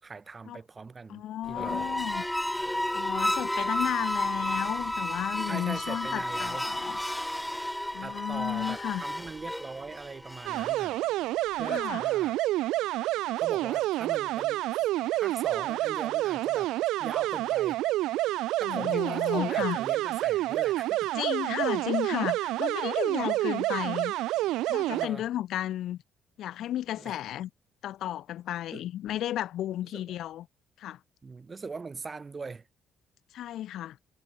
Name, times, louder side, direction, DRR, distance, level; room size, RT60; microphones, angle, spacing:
voice 1, 0.0-1.2 1.5-2.0 5.5-6.7 8.0-11.0 11.5-12.4 13.4-14.6 15.1-16.7 17.0-17.8 18.6-21.1 24.9-25.3 27.0-27.2 28.7-28.8 29.9-30.0 31.2-32.7, right 4 dB, 25° right, 6.7 m, -41 dB
voice 2, 1.1-2.2 2.9-7.0 7.9-9.0 11.6-12.1 18.6-19.8 21.1-24.1 24.7-26.0 26.4-27.5 27.8-30.5 30.8-31.0 33.3-34.0, left 12 dB, 65° left, 5.7 m, -33 dB
sound 1, 1.5-10.9, left 1 dB, 5° left, 2.5 m, -32 dB
sound 2, 10.5-25.1, right 16 dB, 90° right, 2.2 m, -28 dB
cardioid pair, 145°, 0 cm